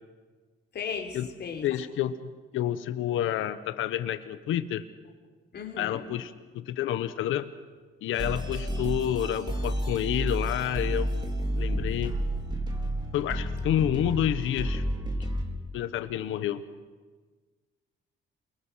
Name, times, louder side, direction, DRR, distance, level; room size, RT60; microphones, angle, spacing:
voice 1, 0.7-1.7 5.5-6.0, left 6 dB, 55° left, 3 dB, 3.8 m, -36 dB
voice 2, 1.6-4.8 5.8-7.5 8.0-11.1 11.5-12.1 13.1-14.8 15.7-16.6, left 11 dB, 85° left, 12 dB, 1.3 m, -29 dB
sound 1, 8.1-15.4, equal, 20° right, 3.9 m, -31 dB
29.0 x 22.0 x 6.4 m, 1.4 s
cardioid pair, 90°, 20 cm